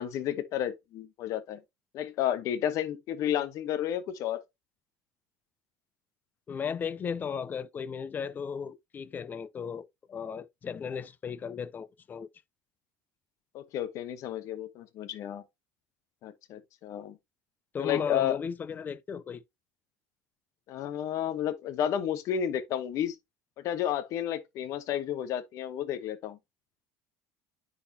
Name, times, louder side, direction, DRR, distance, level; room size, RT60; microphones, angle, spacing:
voice 1, 0.0-1.6 1.9-4.4 13.5-15.4 16.2-17.1 17.8-18.4 20.7-23.2 23.6-26.4, left 10 dB, 55° left, 1.0 m, -31 dB
voice 2, 6.5-12.3 17.7-19.4, left 6 dB, 30° left, 0.6 m, -35 dB
9.5 x 4.2 x 2.8 m
cardioid pair, 125°, 6 cm